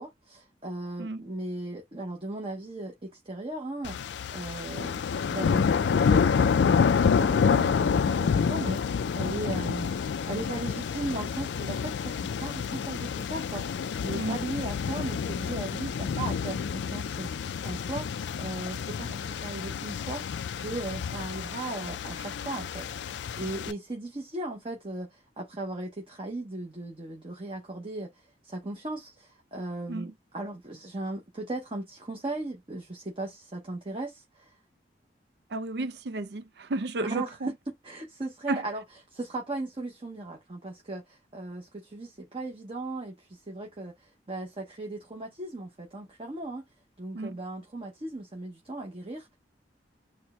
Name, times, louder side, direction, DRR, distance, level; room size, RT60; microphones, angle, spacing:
voice 1, 0.0-9.9 10.3-34.5 37.0-37.3 37.8-38.8 39.1-46.6 47.0-49.4, right 2 dB, 30° right, 0.8 m, -37 dB
sound 1, 3.8-23.7, left 6 dB, 80° left, 0.4 m, -28 dB
voice 2, 35.5-37.5 38.5-38.6 47.1-47.4, right 2 dB, 65° right, 0.5 m, -33 dB
4.3 x 2.2 x 3.0 m
head